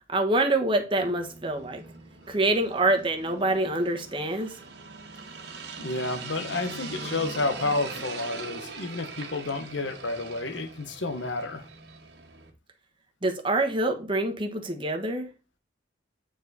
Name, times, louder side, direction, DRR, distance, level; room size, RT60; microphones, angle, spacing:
voice 1, 0.1-1.8 2.3-4.5 13.2-15.3, right 2 dB, 25° right, 1.3 m, -26 dB
sound 1, 0.9-12.5, right 3 dB, 60° right, 1.6 m, -41 dB
voice 2, 5.8-11.6, left 3 dB, 75° left, 0.9 m, -30 dB
9.1 x 4.7 x 4.0 m
head